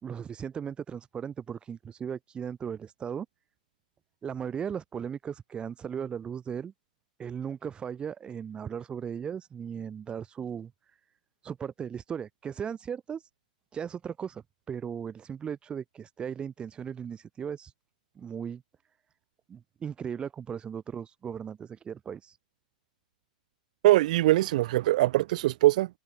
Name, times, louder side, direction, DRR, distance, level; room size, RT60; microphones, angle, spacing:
voice 1, 0.0-3.3 4.2-6.7 7.2-10.7 11.4-13.2 13.7-17.7 18.1-18.6 19.5-22.3, right 7 dB, 20° right, 3.2 m, -37 dB
voice 2, 23.8-25.9, right 16 dB, 60° right, 1.4 m, -22 dB
hypercardioid pair, 120°, 5 cm